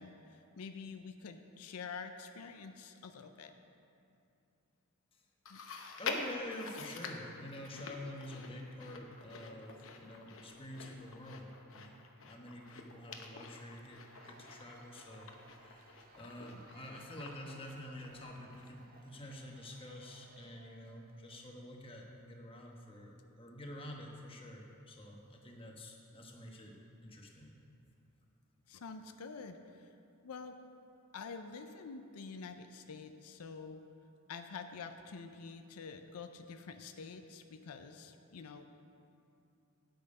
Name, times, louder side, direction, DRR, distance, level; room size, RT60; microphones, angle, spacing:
voice 1, 0.0-3.5 5.5-5.6 28.7-29.9 30.2-30.6 31.1-33.8 34.3-38.6, left 5 dB, 90° left, 7 dB, 0.5 m, -47 dB
Chewing mastication, 5.5-19.0 19.3-19.4 20.2-20.3, left 4 dB, 65° left, 0.8 m, -47 dB
voice 2, 6.0-26.7 27.0-27.6, left 1 dB, 25° left, 0 dB, 1.2 m, -48 dB
Cheering / Applause / Crowd, 13.8-21.5, right 4 dB, 45° right, 0.7 m, -63 dB
9.0 x 8.5 x 5.4 m, 2.7 s
head